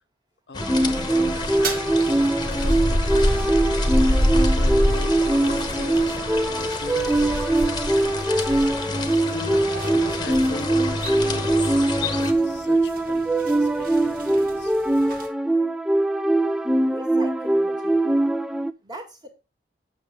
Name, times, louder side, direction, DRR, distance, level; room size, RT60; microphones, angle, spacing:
voice 1, 0.5-1.9 2.4-3.3 4.5-6.2 6.5-7.4 8.5-11.8 12.2-13.3 13.6-14.7, left 3 dB, 75° left, 0.8 m, -39 dB
sound 1, 0.5-12.3, left 1 dB, 25° left, 1.0 m, -26 dB
sound 2, 0.6-18.7, right 1 dB, 5° right, 0.3 m, -22 dB
sound 3, 0.9-15.3, right 3 dB, 50° right, 1.8 m, -41 dB
voice 2, 16.8-18.3 18.8-19.3, right 1 dB, 25° right, 1.8 m, -41 dB
8.2 x 6.2 x 3.5 m
head